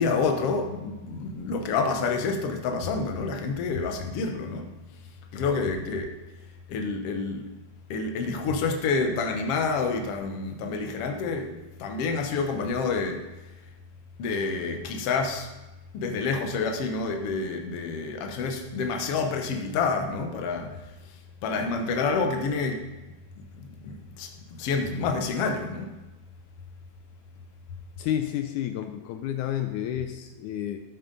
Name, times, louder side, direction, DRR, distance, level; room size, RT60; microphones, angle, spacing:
voice 1, 0.0-4.7 5.3-6.1 6.7-7.5 7.9-13.2 14.2-15.5 15.9-20.8 21.4-22.9 23.5-24.3 24.6-25.9, left 4 dB, 60° left, 3 dB, 1.9 m, -28 dB
voice 2, 28.0-30.8, left 11 dB, 80° left, 7 dB, 2.0 m, -30 dB
12.5 x 8.8 x 4.0 m, 1.1 s
omnidirectional pair, 3.6 m